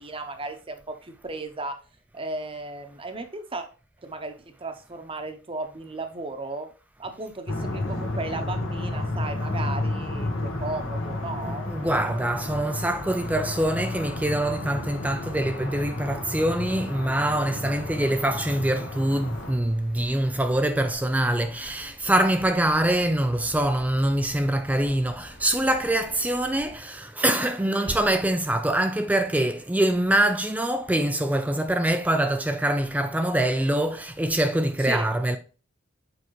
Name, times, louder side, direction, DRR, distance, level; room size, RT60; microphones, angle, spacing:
voice 1, 0.0-1.8 2.1-3.7 4.0-6.7 7.0-11.7 27.6-28.0 34.8-35.1, right 2 dB, 25° right, 0.8 m, -35 dB
sound 1, 7.5-19.5, left 2 dB, 70° left, 1.3 m, -31 dB
voice 2, 11.7-35.4, right 1 dB, 10° right, 0.4 m, -24 dB
sound 2, 19.2-26.8, equal, 50° left, 1.3 m, -48 dB
7.8 x 4.7 x 3.1 m
head